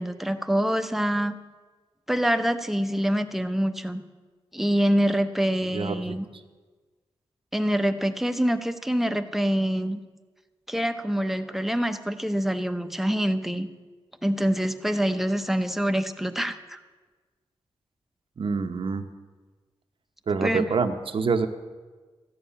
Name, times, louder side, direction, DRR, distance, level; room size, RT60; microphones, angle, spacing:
voice 1, 0.0-1.3 2.1-4.0 4.5-6.3 7.5-10.0 10.7-13.7 14.2-16.8 20.4-20.6, equal, 5° right, 8 dB, 0.8 m, -25 dB
voice 2, 5.7-6.4 18.4-19.0 20.3-21.5, right 4 dB, 60° right, 6 dB, 0.8 m, -26 dB
13.5 x 7.2 x 9.8 m, 1.3 s
wide cardioid pair, 90°, 10 cm